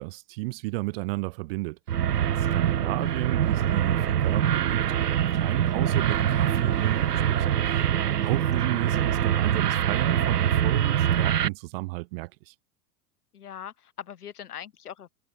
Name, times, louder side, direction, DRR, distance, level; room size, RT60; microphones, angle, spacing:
voice 1, 0.0-1.8 2.2-12.5, right 24 dB, 40° right, 0.5 m, -34 dB
sound 1, 1.9-11.5, right 10 dB, 90° right, 0.6 m, -24 dB
voice 2, 13.3-15.1, left 9 dB, 75° left, 3.8 m, -41 dB
figure-of-eight pair, 95°, 46 cm